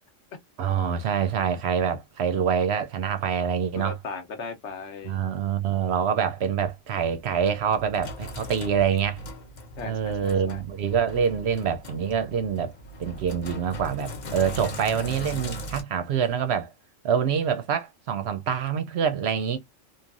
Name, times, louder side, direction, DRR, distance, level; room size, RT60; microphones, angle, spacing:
voice 1, 0.6-3.9 5.0-9.2 9.9-12.7 13.0-16.7 17.0-19.6, right 7 dB, 65° right, 0.8 m, -26 dB
voice 2, 3.8-5.2 9.8-10.6, left 4 dB, 65° left, 1.0 m, -37 dB
Sink (filling or washing), 7.0-15.8, equal, 45° left, 0.7 m, -39 dB
3.1 x 2.3 x 2.4 m
omnidirectional pair, 1.3 m